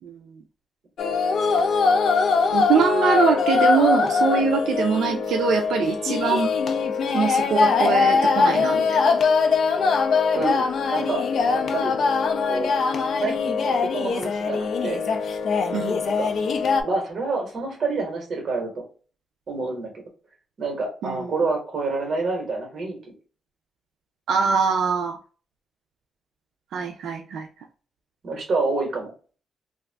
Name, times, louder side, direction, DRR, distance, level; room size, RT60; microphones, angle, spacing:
voice 1, 0.0-0.4 2.5-6.5 7.1-9.1 15.7-16.0 21.0-21.3 24.3-25.2 26.7-27.5, right 6 dB, 85° right, 3 dB, 0.4 m, -23 dB
sound 1, 1.0-16.8, left 5 dB, 55° left, 0.3 m, -22 dB
voice 2, 10.3-11.3 11.5-12.0 12.5-12.8 13.2-15.0 16.2-16.3 16.8-18.8 19.5-20.0 20.6-23.0 28.2-29.1, right 3 dB, 45° right, 2 dB, 1.1 m, -27 dB
2.5 x 2.3 x 3.3 m, 0.39 s
wide cardioid pair, 165°, 0 cm